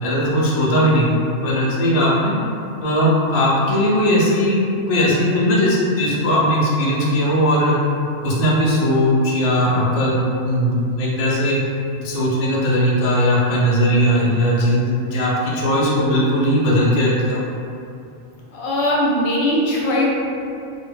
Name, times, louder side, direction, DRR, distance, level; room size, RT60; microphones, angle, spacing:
voice 1, 0.0-1.2 1.4-2.3 2.8-7.7 8.2-10.2 10.4-11.6 12.0-17.4, equal, 90° left, -5 dB, 0.3 m, -18 dB
voice 2, 18.5-20.1, left 1 dB, 65° left, -4 dB, 0.8 m, -19 dB
2.2 x 2.1 x 3.2 m, 2.5 s
omnidirectional pair, 1.3 m